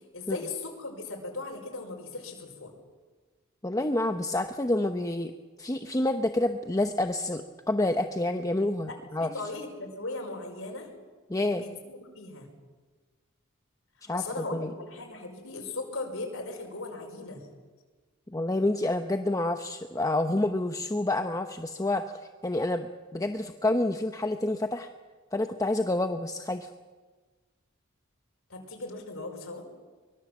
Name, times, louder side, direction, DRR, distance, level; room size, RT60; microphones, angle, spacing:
voice 1, 0.1-2.7 8.9-10.9 11.6-12.5 14.1-17.4 28.5-29.6, left 3 dB, 70° left, 1 dB, 5.4 m, -38 dB
voice 2, 3.6-5.3 5.6-9.3 11.3-11.6 14.0-14.7 18.3-22.9 23.1-24.9 25.3-26.7, left 1 dB, 15° left, 6 dB, 0.8 m, -28 dB
24.5 x 23.0 x 7.5 m, 1.4 s
head